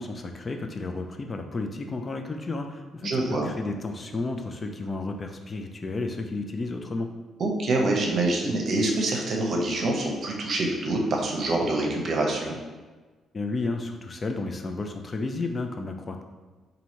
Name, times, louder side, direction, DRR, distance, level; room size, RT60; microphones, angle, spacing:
voice 1, 0.0-3.1 3.4-7.1 13.3-16.2, left 3 dB, 30° left, 4 dB, 0.4 m, -32 dB
voice 2, 3.0-3.5 7.4-12.6, right 2 dB, 55° right, 1 dB, 0.7 m, -26 dB
2.8 x 2.6 x 4.3 m, 1.3 s
cardioid pair, 90°, 0 cm